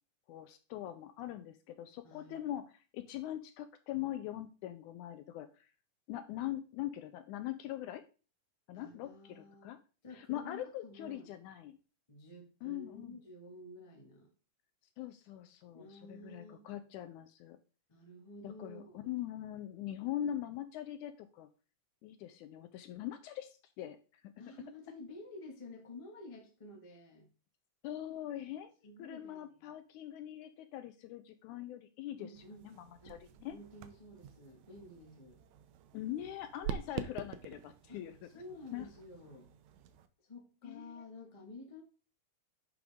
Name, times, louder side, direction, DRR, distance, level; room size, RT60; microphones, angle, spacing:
voice 1, 0.3-5.7 6.1-8.0 8.7-9.8 10.1-11.8 12.6-13.2 15.0-17.6 18.4-21.5 22.0-24.0 24.2-24.3 27.8-28.7 29.0-32.3 32.6-33.6 35.9-38.3 38.7-38.9 40.6-41.0, left 12 dB, 80° left, 10 dB, 1.9 m, -42 dB
voice 2, 2.0-2.4 8.7-9.7 10.0-11.3 12.1-14.3 15.7-16.6 17.9-19.1 24.4-27.3 28.3-28.5 28.8-29.7 32.2-32.6 33.0-33.2 33.4-35.4 37.9-39.5 40.2-41.8, left 2 dB, 20° left, 1 dB, 0.9 m, -51 dB
sound 1, 32.4-40.1, right 9 dB, 80° right, 1.7 m, -47 dB
10.5 x 5.1 x 3.5 m, 0.35 s
omnidirectional pair, 3.8 m